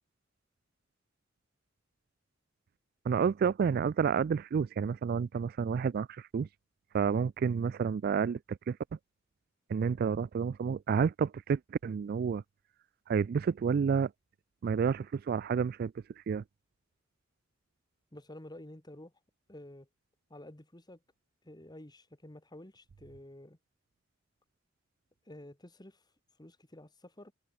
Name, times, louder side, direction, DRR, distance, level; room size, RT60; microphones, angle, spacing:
voice 1, 3.1-6.5 6.9-8.8 9.7-12.4 13.1-14.1 14.6-15.9 16.3-16.4, right 6 dB, 50° right, 0.3 m, -30 dB
voice 2, 18.1-19.1 19.5-19.9 20.3-21.0 21.4-23.6 25.3-26.0 26.4-27.3, left 1 dB, 20° left, 2.3 m, -50 dB
head